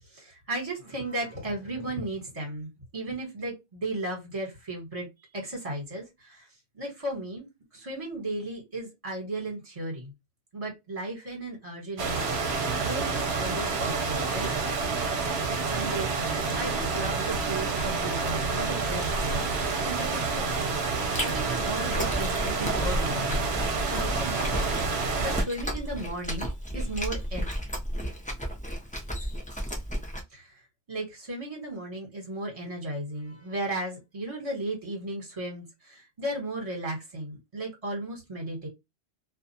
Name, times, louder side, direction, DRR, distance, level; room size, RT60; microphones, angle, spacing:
voice 1, 0.1-5.1 5.3-6.5 6.7-10.1 10.5-14.5 15.7-19.4 19.8-23.5 23.9-27.4 30.3-30.6 30.9-38.7, right 1 dB, 30° right, 0 dB, 1.3 m, -35 dB
sound 1, 12.0-25.4, right 4 dB, 70° right, 0.9 m, -28 dB
Chewing mastication, 21.0-30.2, equal, 10° left, 0.6 m, -33 dB
2.5 x 2.4 x 2.6 m, 0.20 s
omnidirectional pair, 1.2 m